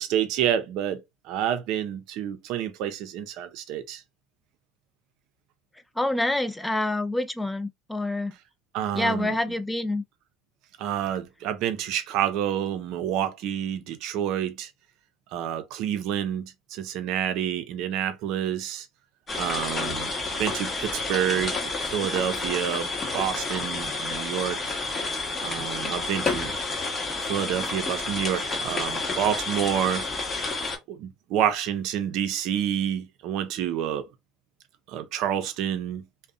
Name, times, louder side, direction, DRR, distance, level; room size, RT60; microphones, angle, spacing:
voice 1, 0.0-4.0 8.7-9.3 10.8-14.7 15.3-18.9 19.4-20.1 20.4-21.6 21.9-24.7 25.4-26.5 27.3-30.1 30.9-34.0 34.9-36.0, right 10 dB, 65° right, 0.5 m, -28 dB
voice 2, 6.0-8.3 8.9-10.0, left 1 dB, 10° left, 0.4 m, -27 dB
sound 1, 19.3-30.8, left 3 dB, 30° left, 0.9 m, -30 dB
2.6 x 2.0 x 2.3 m
supercardioid pair, 95°, 0 cm